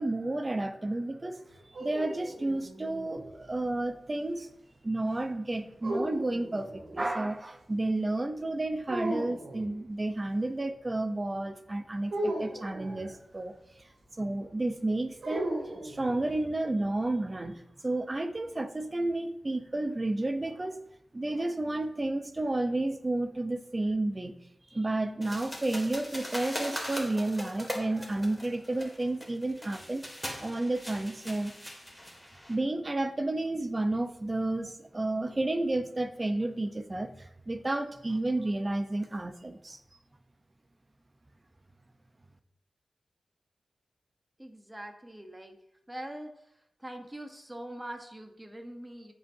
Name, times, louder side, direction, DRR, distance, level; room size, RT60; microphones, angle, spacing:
voice 1, 0.0-1.4 1.8-4.5 4.8-13.9 14.1-15.6 15.8-20.8 21.1-24.4 24.7-30.1 30.4-31.5 32.5-39.8, right 2 dB, 30° right, 8 dB, 0.8 m, -31 dB
sound 1, 1.5-3.3 5.8-7.1 8.9-9.7 12.1-13.2 15.2-16.4, right 1 dB, 80° right, 2.8 m, -36 dB
sound 2, 25.2-32.5, equal, 5° left, 2.3 m, -40 dB
voice 2, 44.4-45.5 45.9-46.3 46.8-49.1, right 1 dB, 15° right, 4 dB, 1.1 m, -42 dB
15.0 x 5.2 x 2.8 m, 0.81 s
cardioid pair, 60°, 0 cm